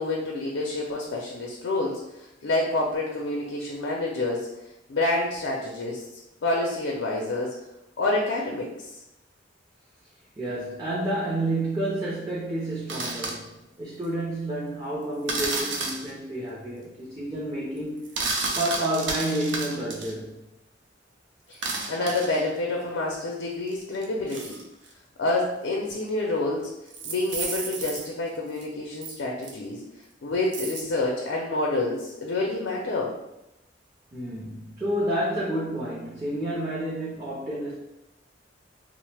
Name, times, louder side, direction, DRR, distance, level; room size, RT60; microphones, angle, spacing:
voice 1, 0.0-4.5 4.9-6.1 6.4-7.5 8.0-8.7 21.5-24.6 25.2-26.7 27.0-29.8 30.2-33.2, left 2 dB, 90° left, -1 dB, 0.5 m, -28 dB
voice 2, 10.4-18.1 18.5-20.3 34.1-37.8, right 1 dB, 20° right, -6 dB, 0.5 m, -30 dB
sound 1, 12.9-13.3 15.3-16.1 18.0-20.1 21.5-22.5 23.7-24.9 25.9-26.0 26.9-28.1 28.6-28.7 29.0-29.2 29.4-29.5 30.5-30.8, right 3 dB, 75° right, 0.5 m, -31 dB
3.0 x 2.0 x 3.3 m, 0.89 s
head